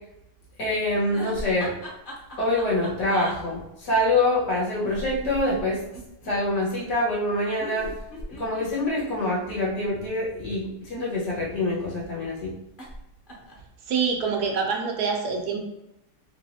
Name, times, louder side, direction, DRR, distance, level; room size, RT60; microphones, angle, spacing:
voice 1, 0.6-1.7 2.4-5.8 6.3-7.9 8.4-12.5, left 1 dB, 90° left, -6 dB, 2.1 m, -25 dB
sound 1, 1.1-3.4 4.8-6.3 7.6-9.9 10.8-11.7 12.8-13.0 13.3-13.7, equal, 40° left, 0.8 m, -38 dB
voice 2, 13.9-15.6, right 5 dB, 70° right, 2 dB, 1.2 m, -25 dB
4.0 x 3.0 x 2.7 m, 0.87 s
omnidirectional pair, 1.8 m